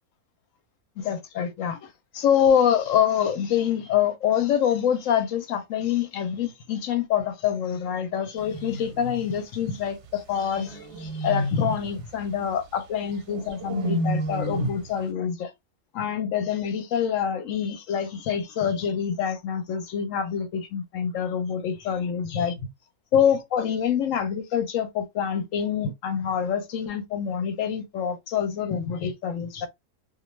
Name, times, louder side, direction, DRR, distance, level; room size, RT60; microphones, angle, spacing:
voice 1, 1.0-15.5 15.9-22.6 23.1-29.7, left 8 dB, 70° left, 0.9 m, -26 dB
sound 1, 8.4-9.3 10.6-11.9 13.3-14.9, right 1 dB, 60° right, 0.8 m, -30 dB
2.3 x 2.2 x 3.0 m
omnidirectional pair, 1.6 m